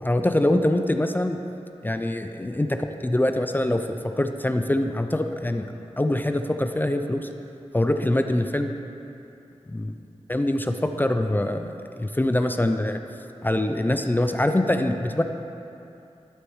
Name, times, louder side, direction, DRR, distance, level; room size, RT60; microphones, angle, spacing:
voice 1, 0.0-1.4 1.8-5.7 6.0-7.3 7.7-8.7 9.7-9.9 10.3-11.7 12.0-13.0 13.4-15.2, left 1 dB, 15° left, 7 dB, 0.4 m, -24 dB
11.5 x 6.1 x 3.1 m, 2.8 s
cardioid pair, 50°, 12 cm